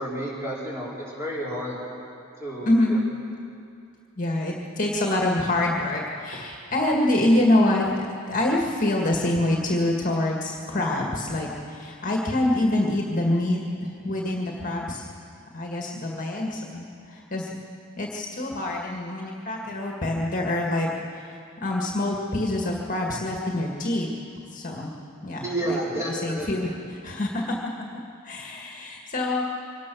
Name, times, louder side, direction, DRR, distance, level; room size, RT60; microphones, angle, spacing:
voice 1, 0.0-1.8 2.4-3.0 6.9-7.0 25.4-26.7, right 1 dB, 15° right, -6 dB, 4.7 m, -31 dB
voice 2, 2.6-3.0 4.2-13.6 14.0-15.0 15.5-16.8 17.1-17.5 18.0-20.9 21.6-24.1 24.5-24.9 25.2-25.8 26.1-26.7 27.0-27.6 27.9-29.4, left 1 dB, 40° left, -1 dB, 1.9 m, -25 dB
24.0 x 18.5 x 6.3 m, 2.5 s
head